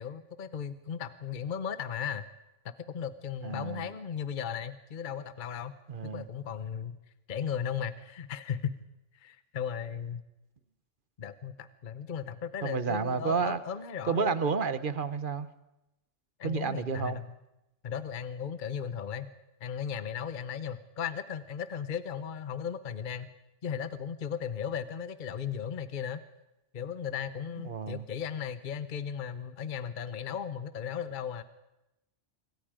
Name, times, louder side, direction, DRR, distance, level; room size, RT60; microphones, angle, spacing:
voice 1, 0.0-2.2 2.9-5.7 6.0-7.0 7.3-8.8 9.1-10.2 11.2-14.4 16.4-17.3 17.8-19.3 19.6-23.3 23.6-26.2 26.7-31.4, left 8 dB, 45° left, 13 dB, 1.0 m, -36 dB
voice 2, 3.4-3.9 5.9-6.3 12.6-13.6 14.1-15.5 16.4-17.2 27.6-28.0, right 5 dB, 45° right, 13 dB, 1.1 m, -31 dB
26.0 x 23.0 x 5.1 m, 0.92 s
omnidirectional pair, 1.2 m